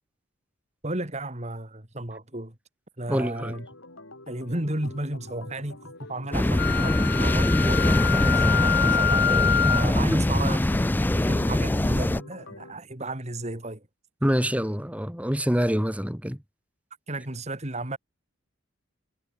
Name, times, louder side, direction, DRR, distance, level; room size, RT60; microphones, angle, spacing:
voice 1, 0.8-2.5 3.0-3.6 4.3-10.7 11.3-13.8 17.1-18.0, right 2 dB, 30° right, 2.4 m, -33 dB
voice 2, 3.1-3.5 14.2-16.4, equal, 5° right, 2.8 m, -25 dB
Organ, 3.4-12.7, left 2 dB, 70° left, 6.6 m, -46 dB
sound 1, 6.3-12.2, left 1 dB, 10° left, 0.3 m, -23 dB
Wind instrument woodwind instrument, 6.6-9.9, left 7 dB, 50° left, 1.0 m, -26 dB
head